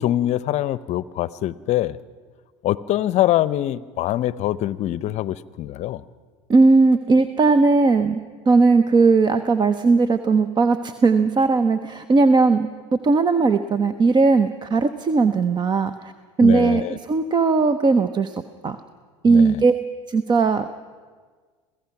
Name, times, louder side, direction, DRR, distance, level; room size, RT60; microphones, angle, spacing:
voice 1, 0.0-2.0 2.6-6.0 16.4-17.0 19.3-19.6, left 13 dB, 50° left, 19 dB, 0.7 m, -24 dB
voice 2, 6.5-8.2 8.5-16.1 16.4-18.8 19.2-19.7 20.1-20.6, right 4 dB, 30° right, 11 dB, 0.8 m, -18 dB
27.0 x 16.5 x 5.9 m, 1.5 s
hypercardioid pair, 80°, 15 cm